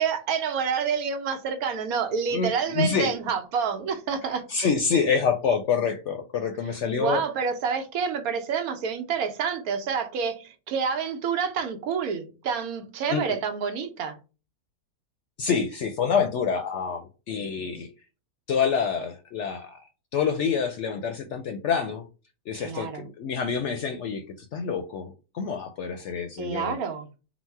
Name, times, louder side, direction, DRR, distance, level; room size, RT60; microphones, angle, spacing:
voice 1, 0.0-4.4 6.9-14.2 22.5-23.1 26.4-27.1, right 6 dB, 75° right, 1.2 m, -28 dB
voice 2, 2.3-3.1 4.5-7.2 13.1-13.4 15.4-17.9 18.5-19.8 20.1-22.0 22.5-26.8, left 6 dB, 65° left, 0.7 m, -27 dB
4.0 x 2.1 x 4.5 m
omnidirectional pair, 1.5 m